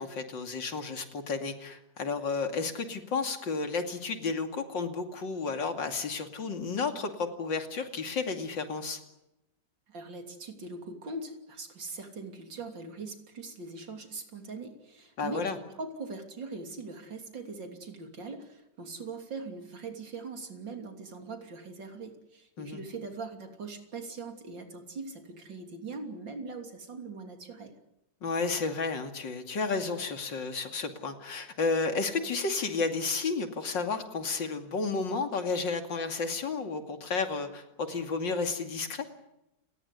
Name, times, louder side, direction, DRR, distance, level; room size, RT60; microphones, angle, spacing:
voice 1, 0.0-9.0 15.2-15.6 22.6-22.8 28.2-39.1, left 4 dB, 85° left, 6 dB, 3.2 m, -32 dB
voice 2, 9.9-27.8, right 3 dB, 85° right, 5 dB, 3.8 m, -41 dB
30.0 x 19.5 x 8.3 m, 0.91 s
omnidirectional pair, 2.0 m